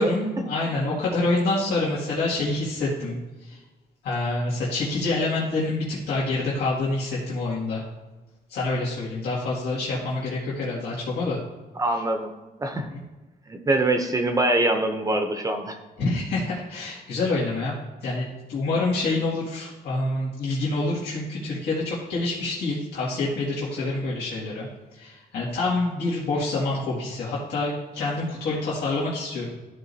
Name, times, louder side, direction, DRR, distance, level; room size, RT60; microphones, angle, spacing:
voice 1, 0.0-3.6 4.0-7.8 8.5-11.4 12.7-13.0 16.0-17.7 18.0-24.7 25.0-29.5, left 2 dB, 85° left, -8 dB, 2.1 m, -27 dB
voice 2, 11.8-12.3 12.6-12.9 13.5-15.8, right 2 dB, 20° right, 5 dB, 0.6 m, -24 dB
13.5 x 4.8 x 2.8 m, 1.2 s
cardioid pair, 165°, 17 cm